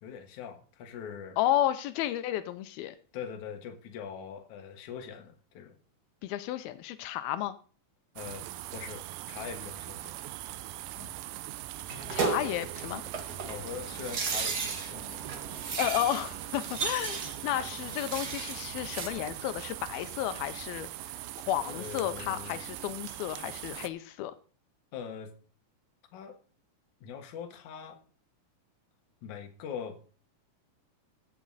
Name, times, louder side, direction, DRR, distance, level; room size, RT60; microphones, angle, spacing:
voice 1, 0.0-1.4 3.1-5.8 8.2-10.2 11.0-11.1 13.5-15.2 17.8-18.0 21.6-22.6 24.9-25.3 26.1-26.4 27.0-28.0 29.2-30.0, left 7 dB, 60° left, 5 dB, 2.6 m, -42 dB
voice 2, 1.4-3.0 6.2-7.6 12.1-13.0 15.8-21.1 21.5-24.3, left 12 dB, 90° left, 11 dB, 2.6 m, -32 dB
sound 1, 8.2-23.9, right 15 dB, 80° right, 2.2 m, -41 dB
sound 2, 11.9-19.1, right 4 dB, 60° right, 1.0 m, -35 dB
15.0 x 7.4 x 4.1 m, 0.39 s
omnidirectional pair, 4.3 m